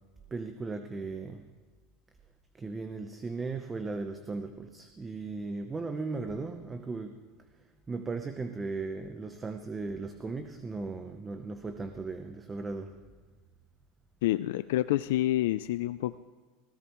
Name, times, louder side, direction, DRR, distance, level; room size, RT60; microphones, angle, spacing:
voice 1, 0.3-1.5 2.6-7.2 7.9-12.9, right 3 dB, 15° right, 8 dB, 0.7 m, -37 dB
voice 2, 14.2-16.2, left 15 dB, 75° left, 12 dB, 0.3 m, -28 dB
19.5 x 16.5 x 3.1 m, 1.4 s
supercardioid pair, 135°, 0 cm